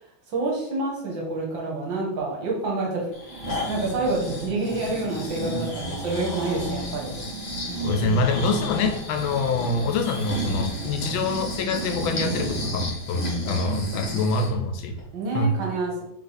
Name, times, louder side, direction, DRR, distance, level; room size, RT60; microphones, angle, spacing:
voice 1, 0.3-7.2 15.1-16.0, right 2 dB, 75° right, -2 dB, 1.9 m, -28 dB
Breathing, 3.1-14.5 15.0-15.1, right 1 dB, 35° left, 1.3 m, -31 dB
voice 2, 7.8-14.9 15.3-15.5, left 3 dB, 85° left, 5 dB, 1.4 m, -25 dB
3.6 x 3.4 x 4.0 m, 0.75 s
omnidirectional pair, 2.2 m